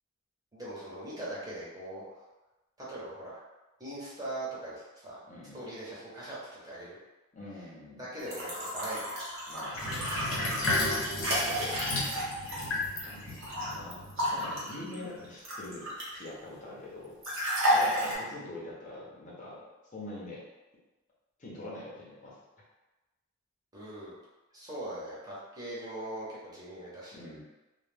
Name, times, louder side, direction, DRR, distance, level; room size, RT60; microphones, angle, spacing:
voice 1, 0.5-2.2 2.8-3.4 3.8-5.2 5.5-7.0 8.0-9.1 10.3-10.6 23.7-24.2 24.5-27.2, right 1 dB, 20° right, -8 dB, 0.7 m, -41 dB
voice 2, 5.3-5.6 7.3-8.1 9.5-10.5 13.0-17.1 17.7-19.6 19.9-20.5 21.4-22.4 27.1-27.4, left 1 dB, 40° left, -6 dB, 0.6 m, -44 dB
sound 1, 8.2-13.7 14.2-16.3 17.2-18.1, equal, 70° right, 1.0 m, -32 dB
Sink (filling or washing), 9.7-14.5, left 2 dB, 85° left, 0.7 m, -33 dB
2.2 x 2.1 x 3.3 m, 1.1 s
head